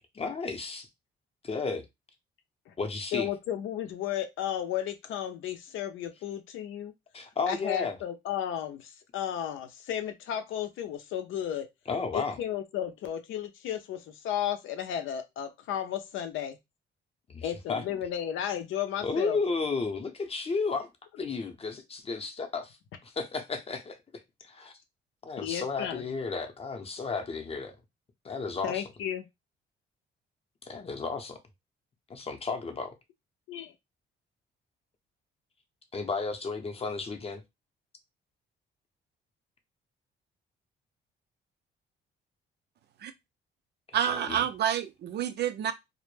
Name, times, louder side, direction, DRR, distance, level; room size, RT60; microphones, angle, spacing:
voice 1, 0.1-0.9 1.4-1.8 2.8-3.3 7.1-8.0 11.9-12.4 17.3-18.0 19.0-20.9 21.2-22.8 23.0-24.0 24.4-24.7 25.2-27.8 28.2-28.8 30.6-31.4 32.1-32.9 35.9-37.4 44.0-44.4, left 4 dB, 30° left, 0.6 m, -33 dB
voice 2, 3.1-6.9 7.5-11.7 12.1-16.6 17.4-19.4 25.4-26.0 28.6-29.3 33.5-33.7, left 10 dB, 80° left, 0.5 m, -33 dB
voice 3, 43.9-45.7, right 9 dB, 60° right, 0.4 m, -28 dB
2.1 x 2.1 x 3.1 m
cardioid pair, 90°, 20 cm